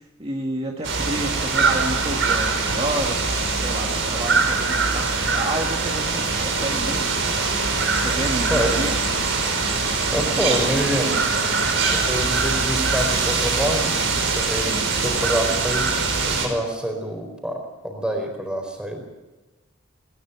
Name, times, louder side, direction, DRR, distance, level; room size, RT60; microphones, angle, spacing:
voice 1, 0.0-7.2 8.0-9.0, right 1 dB, 30° right, 0 dB, 1.8 m, -30 dB
sound 1, 0.8-16.5, right 4 dB, 65° right, 5.3 m, -22 dB
voice 2, 10.1-11.2 11.8-13.9 14.2-14.8 15.0-19.1, equal, 5° right, 3 dB, 4.5 m, -26 dB
20.0 x 19.5 x 6.9 m, 1.1 s
head